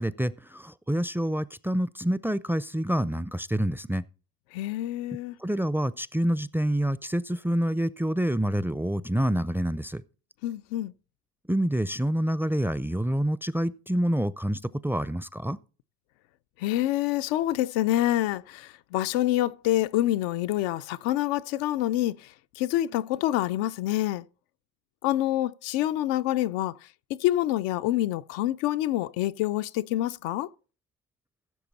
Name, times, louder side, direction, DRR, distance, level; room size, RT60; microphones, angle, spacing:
voice 1, 0.0-4.0 5.4-10.0 11.5-15.6, right 1 dB, 5° right, 0.4 m, -27 dB
voice 2, 4.5-5.4 10.4-10.9 16.6-22.3 22.6-24.2 25.0-26.8 27.1-30.5, left 14 dB, 85° left, 0.6 m, -27 dB
15.5 x 6.8 x 4.0 m
supercardioid pair, 55°, 43 cm